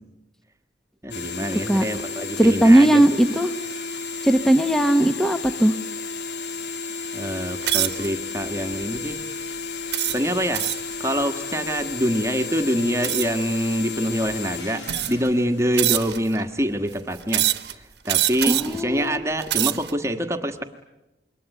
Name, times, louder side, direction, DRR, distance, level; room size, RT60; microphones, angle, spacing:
voice 1, 1.0-3.0 7.1-9.2 10.1-10.7 11.0-17.5 17.7-20.6, equal, 15° right, 5 dB, 1.4 m, -25 dB
sound 1, 1.1-16.3, left 4 dB, 75° left, 2.6 m, -33 dB
voice 2, 2.4-3.5 4.2-5.7 18.4-19.2, right 1 dB, ahead, 8 dB, 1.0 m, -17 dB
sound 2, 7.6-8.1 8.7-9.0 9.9-10.9 13.0-13.4 14.3-14.4 14.8-15.3 15.8-16.4 17.3-17.7 18.1-18.8 19.3-19.9, right 14 dB, 70° right, 1.2 m, -24 dB
27.5 x 23.0 x 9.0 m, 0.96 s
head